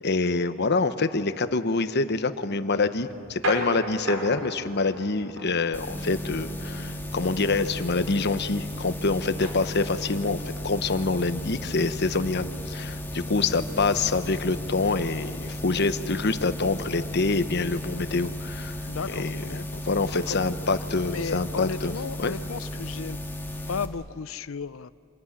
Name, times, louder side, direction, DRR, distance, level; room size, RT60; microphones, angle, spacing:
voice 1, 0.0-10.4 10.6-18.8 19.1-21.9 22.2-22.3, left 3 dB, 55° left, 11 dB, 1.0 m, -26 dB
sound 1, 3.0-19.2, equal, 80° right, 5.8 m, -40 dB
sound 2, 5.7-23.9, left 1 dB, 10° left, 1.8 m, -35 dB
voice 2, 18.9-19.7 20.3-20.4 21.1-23.2 23.7-24.9, left 5 dB, 75° left, 16 dB, 0.6 m, -34 dB
27.0 x 19.5 x 9.9 m, 2.5 s
head